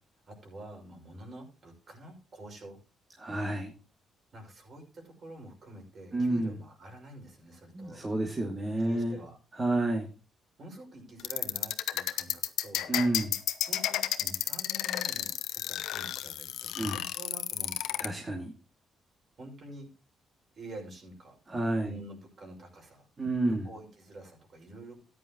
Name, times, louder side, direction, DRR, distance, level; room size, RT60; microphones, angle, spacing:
voice 1, 0.3-2.8 4.3-8.0 8.8-9.4 10.6-12.9 13.7-18.0 19.4-19.9 20.6-21.4 21.8-23.1 23.4-25.0, right 1 dB, 50° right, 1 dB, 5.9 m, -47 dB
voice 2, 3.2-3.7 6.1-6.6 7.7-9.2 9.5-10.1 12.9-13.4 16.7-17.0 18.0-18.5 21.5-21.9 23.2-23.7, right 2 dB, 25° right, 0 dB, 2.4 m, -30 dB
sound 1, 11.2-18.1, left 13 dB, 85° left, 0.9 m, -31 dB
14.0 x 9.9 x 3.1 m, 0.33 s
cardioid pair, 90°, 0 cm